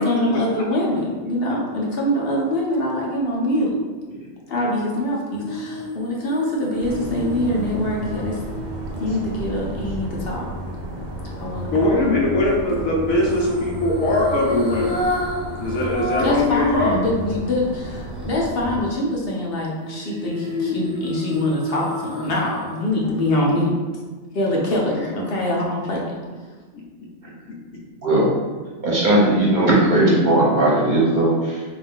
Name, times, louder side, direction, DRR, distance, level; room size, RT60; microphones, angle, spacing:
voice 1, 0.0-3.8 4.5-8.4 9.0-10.5 11.3-12.1 13.0-13.1 16.2-23.8 24.3-26.1, left 1 dB, 55° left, -3 dB, 0.8 m, -24 dB
sound 1, 5.3-9.6 13.1-16.5 16.9-17.0 19.8-22.7 23.1-23.2, left 1 dB, 10° right, 0.3 m, -30 dB
sound 2, 6.8-18.8, right 1 dB, 80° right, 0.4 m, -32 dB
voice 2, 11.7-15.0 15.6-17.0, left 2 dB, 80° left, -2 dB, 1.3 m, -21 dB
voice 3, 28.8-31.6, right 1 dB, 45° right, -6 dB, 0.7 m, -17 dB
3.7 x 2.6 x 3.6 m, 1.3 s
omnidirectional pair, 1.4 m